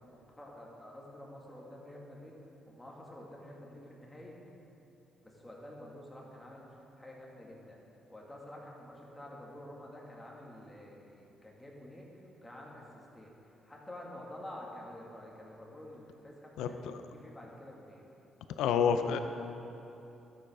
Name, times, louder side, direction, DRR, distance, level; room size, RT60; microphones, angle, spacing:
voice 1, 0.4-2.3 2.7-4.3 5.2-6.7 7.0-7.8 8.1-12.1 12.4-12.8 13.1-13.3 13.6-16.8 17.1-18.0, left 1 dB, 15° left, -3 dB, 2.0 m, -49 dB
voice 2, 16.6-17.0 18.6-19.2, left 7 dB, 90° left, 8 dB, 0.5 m, -29 dB
12.5 x 8.0 x 3.7 m, 3.0 s
cardioid pair, 90°, 0 cm